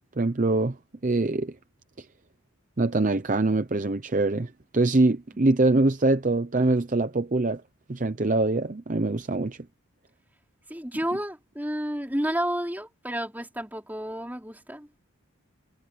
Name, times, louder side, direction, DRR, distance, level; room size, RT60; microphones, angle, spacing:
voice 1, 0.2-0.8 1.0-1.5 2.0-2.1 2.8-7.6 7.9-9.6, right 2 dB, 35° right, 0.6 m, -24 dB
voice 2, 10.7-15.0, equal, 10° right, 4.6 m, -31 dB
head